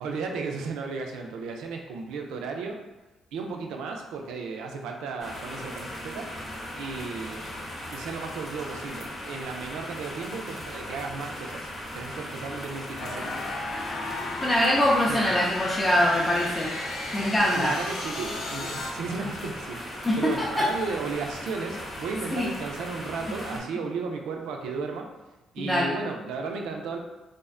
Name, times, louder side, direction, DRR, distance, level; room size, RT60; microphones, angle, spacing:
voice 1, 0.0-2.8 3.3-6.3 6.8-7.5 7.9-13.4 15.0-15.4 17.4-25.1 25.5-27.0, right 4 dB, 90° right, 2 dB, 0.3 m, -34 dB
sound 1, 5.2-23.6, left 1 dB, 40° left, 0.8 m, -38 dB
sound 2, 13.0-18.9, left 2 dB, 75° left, 0.4 m, -34 dB
voice 2, 14.4-16.7 17.1-17.7 20.0-20.6 22.3-22.5 25.6-25.9, left 1 dB, 15° left, -5 dB, 0.4 m, -23 dB
2.5 x 2.1 x 2.4 m, 1.0 s
cardioid pair, 90°, 0 cm